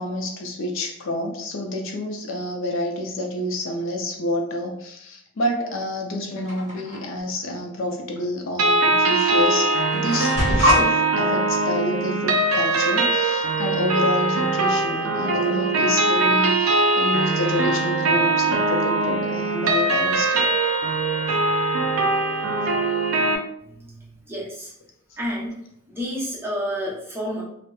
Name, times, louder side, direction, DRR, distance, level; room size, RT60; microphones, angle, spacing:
voice 1, 0.0-20.5, left 1 dB, 60° left, 2 dB, 0.4 m, -28 dB
sound 1, 6.5-7.0 8.1-8.2 9.2-9.3 9.5-10.8, left 1 dB, 35° right, 1.0 m, -22 dB
sound 2, 8.6-23.4, right 2 dB, 70° right, 0.4 m, -21 dB
voice 2, 23.7-24.7 25.2-25.6 25.9-27.4, equal, 10° right, -6 dB, 0.7 m, -30 dB
2.7 x 2.0 x 2.3 m, 0.74 s
head